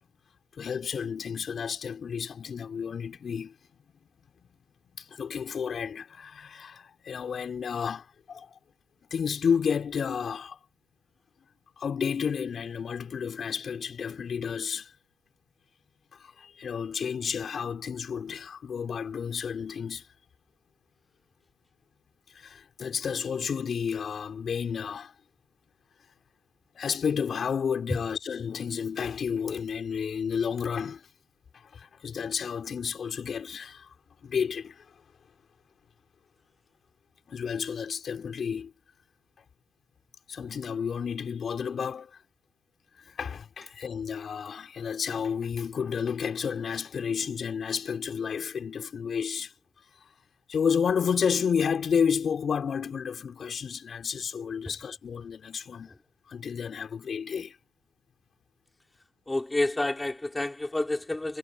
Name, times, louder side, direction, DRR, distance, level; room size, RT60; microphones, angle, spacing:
voice 1, 0.6-3.6 4.4-4.5 4.9-8.5 9.1-10.6 11.8-14.9 16.1-20.0 22.3-25.1 26.7-31.0 31.5-33.9 34.2-34.8 37.3-38.7 40.3-42.2 43.0-49.5 50.0-50.1 50.5-55.9 56.3-57.6, left 7 dB, 50° left, 5.4 m, -31 dB
voice 2, 59.3-61.4, left 2 dB, 15° left, 4.5 m, -29 dB
cardioid pair, 90°, 0 cm